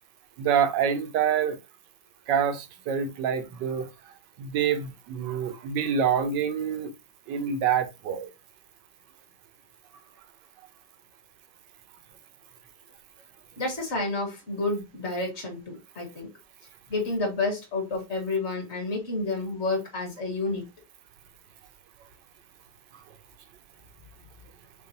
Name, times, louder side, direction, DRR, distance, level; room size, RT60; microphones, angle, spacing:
voice 1, 0.4-1.6 2.3-3.9 4.4-6.9 7.3-8.3, right 8 dB, 85° right, 1.4 m, -26 dB
voice 2, 13.6-16.3 16.9-20.7, left 3 dB, 40° left, 1.7 m, -30 dB
6.9 x 2.4 x 2.7 m
omnidirectional pair, 1.9 m